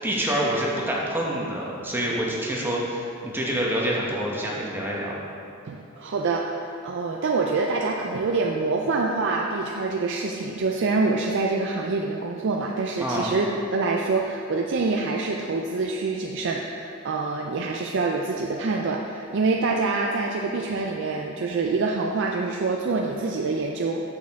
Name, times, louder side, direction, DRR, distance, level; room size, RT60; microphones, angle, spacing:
voice 1, 0.0-5.1 13.0-13.3, right 1 dB, 10° right, -4 dB, 1.0 m, -27 dB
voice 2, 5.7-24.0, right 3 dB, 60° right, 0 dB, 0.4 m, -26 dB
8.4 x 6.5 x 3.6 m, 2.6 s
head